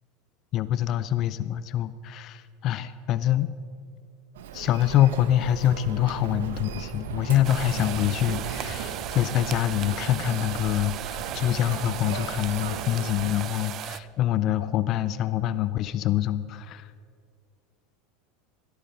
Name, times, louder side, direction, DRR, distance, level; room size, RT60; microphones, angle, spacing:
voice 1, 0.5-3.5 4.6-16.9, left 12 dB, 45° left, 15 dB, 0.4 m, -25 dB
Human voice, 4.3-13.3, right 7 dB, 85° right, 0.9 m, -37 dB
sound 1, 7.4-14.0, right 11 dB, 45° right, 0.4 m, -36 dB
16.0 x 8.6 x 5.3 m, 2.2 s
supercardioid pair, 120°, 0 cm